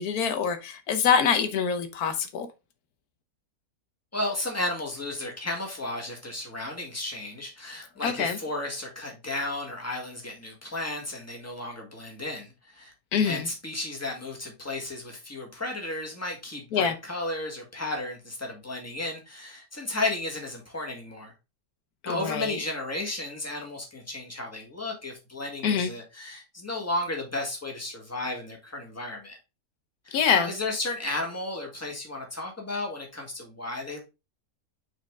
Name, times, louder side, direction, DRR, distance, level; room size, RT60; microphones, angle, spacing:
voice 1, 0.0-2.5 8.0-8.4 13.1-13.5 16.7-17.0 22.0-22.6 25.6-25.9 30.1-30.5, left 6 dB, 85° left, 1.3 m, -25 dB
voice 2, 4.1-12.9 13.2-21.3 22.0-29.4 30.0-34.0, left 2 dB, 10° left, 1.7 m, -34 dB
6.4 x 4.2 x 3.5 m
omnidirectional pair, 1.6 m